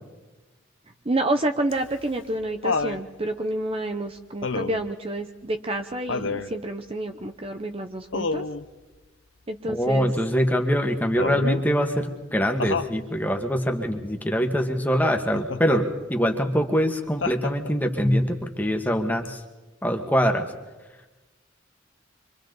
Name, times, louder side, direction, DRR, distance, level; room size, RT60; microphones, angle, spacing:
voice 1, 1.1-8.4 9.5-10.1, right 1 dB, 30° right, 6 dB, 0.9 m, -29 dB
Laughter, 1.7-3.0 4.4-4.9 6.1-6.5 8.1-8.6 11.2-11.7 12.6-13.0 15.3-15.8 17.2-17.9 19.2-19.3, left 4 dB, 85° left, 0.9 m, -29 dB
voice 2, 9.7-19.4 19.8-20.5, equal, 10° left, 4 dB, 1.7 m, -23 dB
26.5 x 25.0 x 4.0 m, 1.2 s
head